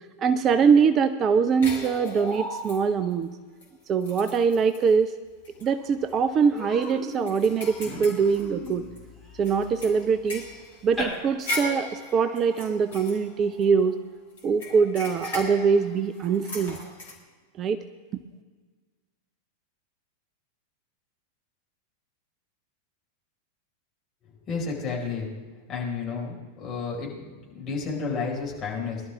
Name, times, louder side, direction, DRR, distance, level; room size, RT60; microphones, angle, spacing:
voice 1, 0.2-3.3 3.9-5.2 5.6-8.9 9.4-10.4 10.8-14.0 14.4-16.8 17.6-17.8, right 6 dB, 30° right, 11 dB, 0.6 m, -23 dB
sound 1, 1.6-3.1 3.6-3.7 4.0-4.9 5.4-5.6 6.0-6.1 6.6-9.0 9.4-13.9 14.4-17.1, left 1 dB, 60° left, 3.6 m, -37 dB
Human voice, 5.5-5.6 5.9-6.1 6.5-11.0, left 1 dB, ahead, 5.1 m, -39 dB
voice 2, 24.5-25.3 25.7-29.0, left 4 dB, 30° left, -3 dB, 5.0 m, -31 dB
21.0 x 12.0 x 3.6 m, 1.4 s
figure-of-eight pair, 90°, 0 cm